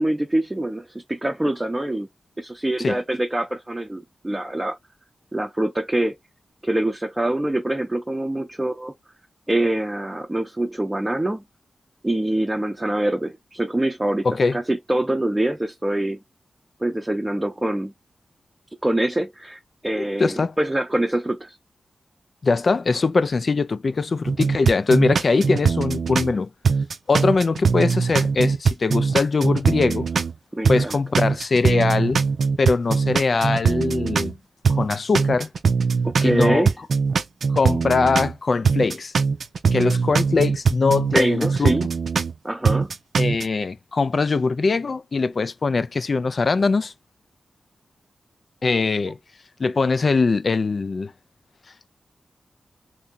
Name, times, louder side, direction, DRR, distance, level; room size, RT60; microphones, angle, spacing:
voice 1, 0.0-2.1 2.4-4.8 5.3-6.2 6.6-8.9 9.5-11.4 12.0-14.3 14.5-16.2 16.8-17.9 18.8-21.5 30.5-31.0 36.0-36.7 41.1-41.9 42.4-42.9, right 1 dB, 15° right, 0.6 m, -24 dB
voice 2, 14.2-14.6 20.0-20.5 22.4-26.5 27.1-30.1 30.7-32.2 32.6-34.4 34.7-35.5 36.2-36.7 37.5-39.1 39.7-41.8 43.2-46.9 48.6-49.2 49.6-51.1, left 4 dB, 50° left, 0.3 m, -21 dB
sound 1, 24.2-26.3 26.6-30.3 30.6-34.3 34.6-38.3 38.6-42.3 42.6-43.4, right 5 dB, 70° right, 0.5 m, -21 dB
2.9 x 2.7 x 3.6 m
wide cardioid pair, 105°, 0 cm